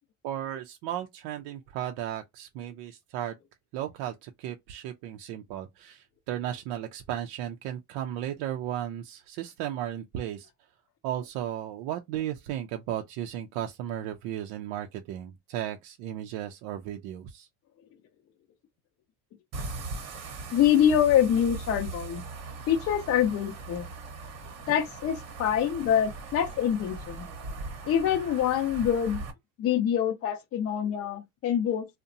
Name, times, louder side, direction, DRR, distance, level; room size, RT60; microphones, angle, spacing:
voice 1, 0.2-3.4 3.7-10.5 11.0-17.5, right 11 dB, 60° right, 0.5 m, -35 dB
sound 1, 19.5-29.3, right 3 dB, 40° right, 0.9 m, -40 dB
voice 2, 20.5-22.2 22.7-23.9 24.7-27.3 27.9-29.2 29.6-31.9, left 9 dB, 35° left, 0.6 m, -25 dB
2.7 x 2.1 x 2.5 m
supercardioid pair, 100°, 42 cm